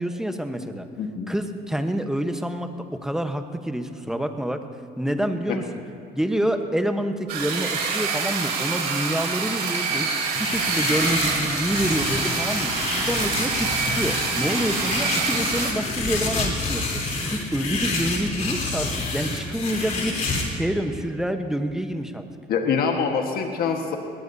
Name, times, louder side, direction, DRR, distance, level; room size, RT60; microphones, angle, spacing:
voice 1, 0.0-0.9 1.3-4.6 5.0-5.6 6.1-12.7 13.0-20.2 20.5-22.3, equal, 5° right, 6 dB, 1.0 m, -27 dB
voice 2, 1.0-1.3 5.5-5.6 22.5-24.0, left 6 dB, 65° left, 3 dB, 1.4 m, -24 dB
sound 1, 7.3-15.7, right 5 dB, 75° right, 3.2 m, -26 dB
sound 2, 10.4-20.4, left 3 dB, 45° left, 3.4 m, -28 dB
20.5 x 18.0 x 2.7 m, 2.6 s
cardioid pair, 110°, 17 cm